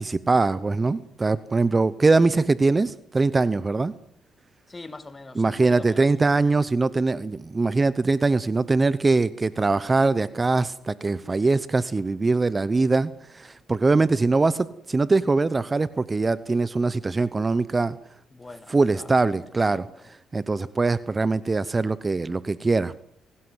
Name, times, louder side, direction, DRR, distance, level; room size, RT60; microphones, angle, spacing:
voice 1, 0.0-3.9 5.4-18.0 18.7-19.9 20.3-23.0, right 3 dB, 25° right, 0.8 m, -22 dB
voice 2, 4.7-6.1 18.3-19.2 19.6-20.1, left 2 dB, 20° left, 2.2 m, -43 dB
24.5 x 17.5 x 8.0 m
cardioid pair, 90°, 0 cm